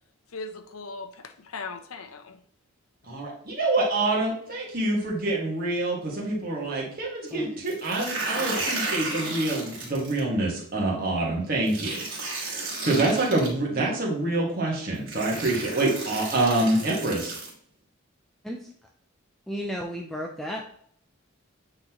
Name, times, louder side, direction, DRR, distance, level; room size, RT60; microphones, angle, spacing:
voice 1, 0.3-2.4, left 4 dB, 85° left, 8 dB, 0.7 m, -38 dB
voice 2, 3.1-12.0 12.5-17.3, right 2 dB, 45° right, -3 dB, 1.9 m, -26 dB
sound 1, 7.7-10.2 11.7-13.5 14.5-14.6 15.1-17.5, right 2 dB, 60° right, 2.8 m, -33 dB
voice 3, 19.5-20.6, equal, ahead, 0 dB, 0.4 m, -33 dB
8.8 x 4.0 x 3.0 m, 0.63 s
head